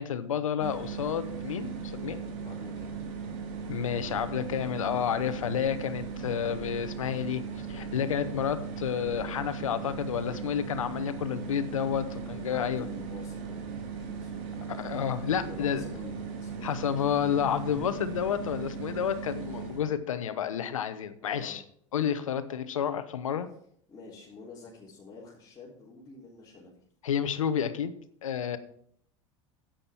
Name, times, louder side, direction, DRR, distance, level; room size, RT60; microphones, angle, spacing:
voice 1, 0.0-2.2 3.7-7.4 7.7-12.9 14.7-15.8 16.6-21.6 21.9-23.5 27.0-27.9 28.2-28.6, left 8 dB, 85° left, 12 dB, 0.9 m, -30 dB
sound 1, 0.6-19.9, right 6 dB, 60° right, 2.9 m, -38 dB
voice 2, 2.4-3.1 12.5-14.5 15.5-16.7 21.2-21.6 23.9-26.8, left 3 dB, 25° left, -7 dB, 3.5 m, -48 dB
11.0 x 8.8 x 4.4 m, 0.64 s
hypercardioid pair, 90°, 17 cm